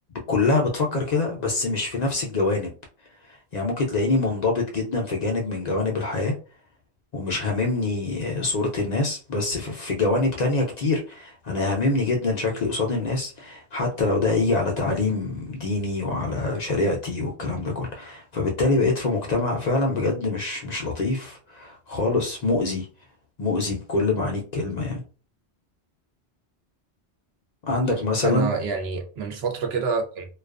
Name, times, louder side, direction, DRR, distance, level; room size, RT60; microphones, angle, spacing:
voice 1, 0.3-2.7 3.5-6.3 7.1-22.9 23.4-25.0 27.6-28.5, left 3 dB, 55° left, 0.5 m, -25 dB
voice 2, 28.2-30.3, right 5 dB, 70° right, 0.8 m, -27 dB
2.3 x 2.3 x 2.3 m
omnidirectional pair, 1.1 m